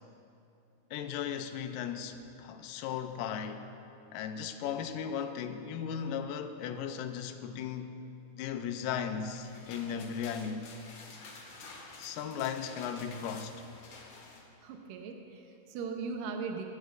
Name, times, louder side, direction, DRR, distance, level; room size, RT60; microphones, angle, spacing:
voice 1, 0.9-3.7 4.1-7.9 8.4-10.7 12.0-13.5, left 8 dB, 80° left, 2.1 m, -36 dB
sound 1, 9.1-14.4, left 3 dB, 60° left, 2.5 m, -50 dB
voice 2, 14.6-16.7, right 5 dB, 75° right, 2.3 m, -39 dB
23.5 x 10.5 x 2.6 m
omnidirectional pair, 4.3 m